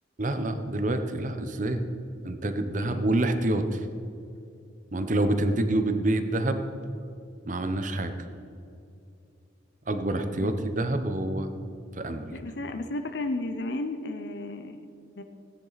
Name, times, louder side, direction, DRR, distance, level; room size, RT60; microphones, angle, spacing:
voice 1, 0.2-1.8 2.2-3.8 4.9-6.6 7.5-8.1 9.9-11.5 11.9-12.4, right 1 dB, 40° right, 8 dB, 0.8 m, -27 dB
voice 2, 12.3-14.8 15.2-15.3, left 2 dB, 55° left, 7 dB, 0.7 m, -33 dB
17.0 x 9.8 x 4.1 m, 2.6 s
head